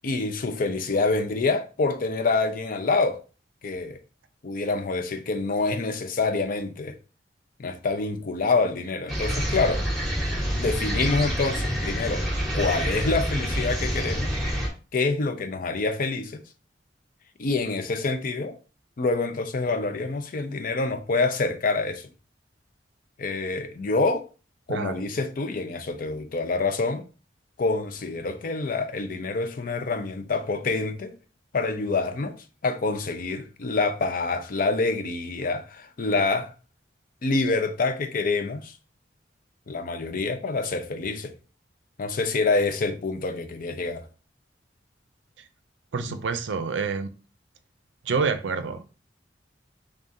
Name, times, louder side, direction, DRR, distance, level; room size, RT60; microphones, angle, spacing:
voice 1, 0.0-3.2 3.6-4.0 4.4-6.9 7.6-9.8 10.5-12.2 12.5-14.3 14.9-16.4 17.4-18.6 19.0-22.1 23.2-24.3 24.7-27.0 27.6-31.1 31.5-32.4 32.6-36.5 37.2-38.7 39.7-41.3 42.0-44.1 46.0-46.1, left 3 dB, 50° left, 0.5 m, -26 dB
sound 1, 9.1-14.7, equal, ahead, 1.1 m, -27 dB
voice 2, 45.9-47.1 48.0-48.8, right 5 dB, 80° right, 0.5 m, -27 dB
3.7 x 3.5 x 2.6 m
head